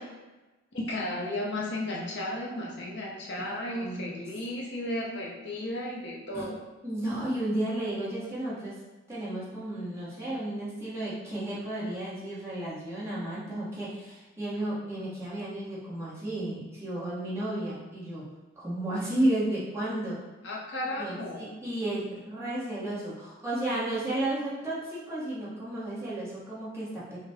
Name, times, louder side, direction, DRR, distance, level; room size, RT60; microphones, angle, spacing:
voice 1, 0.7-6.6 20.4-21.5, left 1 dB, 60° left, -3 dB, 0.8 m, -34 dB
voice 2, 3.5-4.2 6.3-6.4 6.8-8.7 9.1-18.3 18.6-20.2 21.0-27.2, right 1 dB, 15° right, -9 dB, 1.2 m, -33 dB
5.5 x 2.3 x 3.5 m, 1.1 s
head